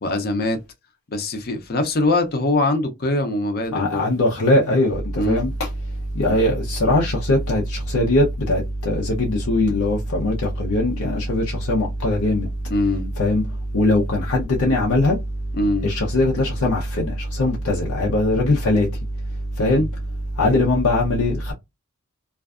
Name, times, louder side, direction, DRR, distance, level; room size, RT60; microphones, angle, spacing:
voice 1, 0.0-0.6 1.1-4.1 5.2-5.4 12.7-13.1 15.5-15.9 19.6-19.8, left 2 dB, 45° left, 0.6 m, -22 dB
voice 2, 3.7-12.5 13.2-15.5 15.8-20.1 20.3-21.5, left 1 dB, 85° left, 0.6 m, -21 dB
2.5 x 2.3 x 2.3 m
head